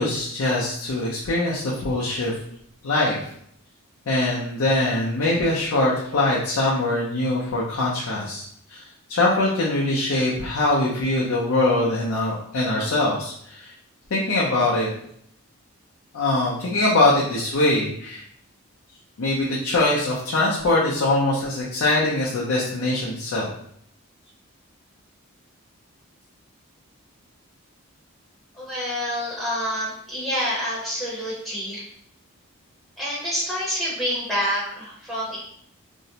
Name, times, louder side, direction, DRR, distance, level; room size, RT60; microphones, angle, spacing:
voice 1, 0.0-2.4 2.8-3.2 4.1-8.4 8.7-8.8 9.1-13.7 14.1-14.9 16.1-18.2 19.2-23.5, left 2 dB, 70° left, -5 dB, 0.5 m, -22 dB
voice 2, 28.5-31.8 33.0-35.4, equal, ahead, -9 dB, 0.6 m, -27 dB
2.5 x 2.0 x 2.7 m, 0.68 s
head